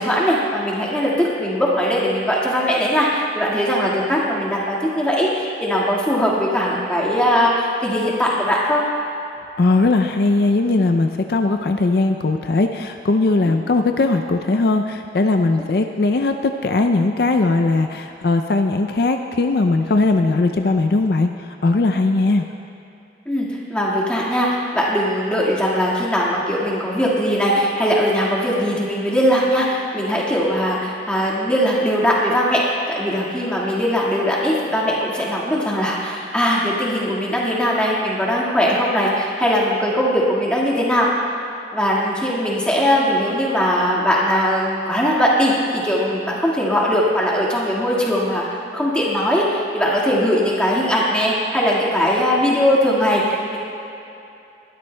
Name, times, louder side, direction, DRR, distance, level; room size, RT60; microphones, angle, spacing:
voice 1, 0.0-8.8 23.2-41.1 41.7-48.4 48.7-53.6, equal, 5° left, -5 dB, 1.7 m, -20 dB
voice 2, 9.6-22.4, left 3 dB, 60° left, 5 dB, 0.4 m, -19 dB
20.0 x 12.5 x 2.2 m, 2.7 s
head